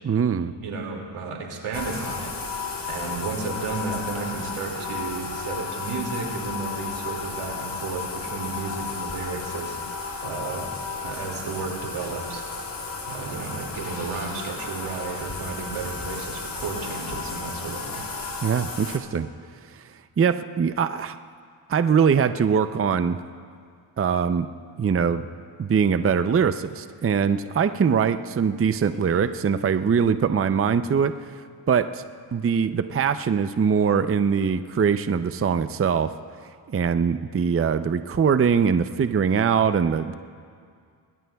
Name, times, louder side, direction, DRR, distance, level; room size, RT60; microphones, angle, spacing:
voice 1, 0.0-0.5 18.4-19.3 20.2-21.2 21.7-23.2 24.0-24.5 24.8-25.3 25.6-31.1 31.7-32.0 32.3-36.1 36.7-40.2, right 6 dB, 30° right, 11 dB, 0.6 m, -22 dB
voice 2, 0.6-2.3 2.9-10.7 11.0-12.5 13.1-18.0, right 4 dB, 90° right, 0 dB, 2.5 m, -33 dB
Bathtub (filling or washing), 1.7-19.0, left 4 dB, 40° left, 2.4 m, -33 dB
24.5 x 20.5 x 2.3 m, 2.2 s
supercardioid pair, 50°, 49 cm